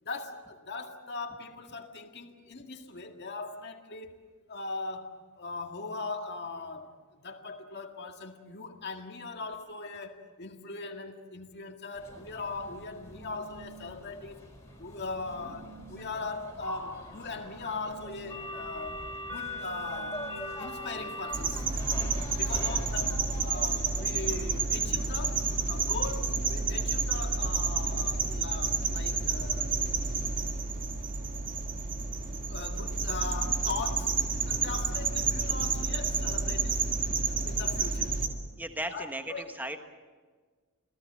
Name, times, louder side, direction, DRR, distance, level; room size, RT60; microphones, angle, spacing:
voice 1, 0.0-4.2 4.5-14.4 14.8-20.3 20.6-21.6 22.3-29.7 31.8-32.1 32.5-34.2 34.5-36.8 37.4-38.2 38.9-39.4, left 3 dB, 50° left, 3 dB, 2.0 m, -40 dB
sound 1, 11.9-26.1, equal, 15° left, 4.5 m, -42 dB
sound 2, 21.3-38.3, right 4 dB, 35° right, 2.1 m, -30 dB
voice 2, 38.6-39.8, right 1 dB, 10° right, 6 dB, 1.3 m, -36 dB
27.0 x 17.5 x 7.6 m, 1.5 s
head